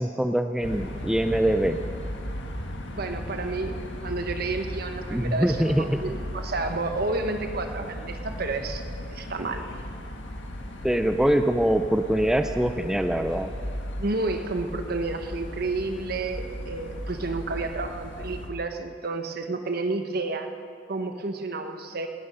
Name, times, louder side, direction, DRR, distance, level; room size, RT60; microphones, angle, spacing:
voice 1, 0.0-1.8 5.1-6.0 10.8-13.5, right 1 dB, 5° right, 7 dB, 0.5 m, -23 dB
sound 1, 0.6-18.5, equal, 80° left, 1.7 m, -36 dB
voice 2, 2.9-8.8 9.1-9.6 14.0-20.5 20.9-22.1, right 3 dB, 55° right, 6 dB, 1.2 m, -30 dB
18.5 x 12.5 x 5.5 m, 2.4 s
head